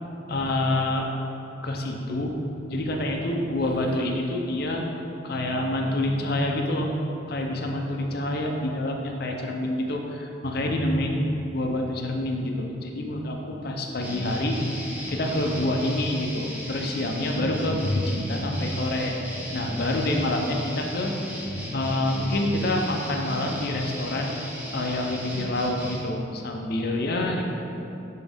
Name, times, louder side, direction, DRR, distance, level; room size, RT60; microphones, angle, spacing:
voice 1, 0.3-1.1 1.6-2.3 2.7-4.8 5.2-6.9 7.3-14.6 15.1-19.1 19.5-21.1 21.7-24.4 24.7-27.4, left 1 dB, 50° left, 1 dB, 0.6 m, -27 dB
sound 1, 14.0-26.0, equal, 10° right, 0.8 m, -35 dB
7.6 x 3.6 x 3.5 m, 2.9 s
head